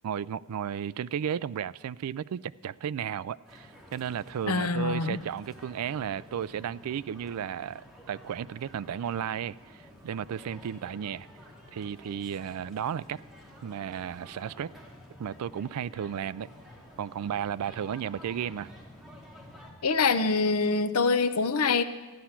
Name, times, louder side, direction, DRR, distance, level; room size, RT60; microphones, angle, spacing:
voice 1, 0.0-11.3 11.7-13.2 13.6-14.7 15.2-16.5 17.0-18.7, right 8 dB, 80° right, 0.3 m, -34 dB
sound 1, 3.4-19.7, left 1 dB, ahead, 2.3 m, -51 dB
voice 2, 4.5-5.2 19.8-21.8, left 4 dB, 75° left, 0.7 m, -25 dB
13.5 x 11.0 x 5.8 m
head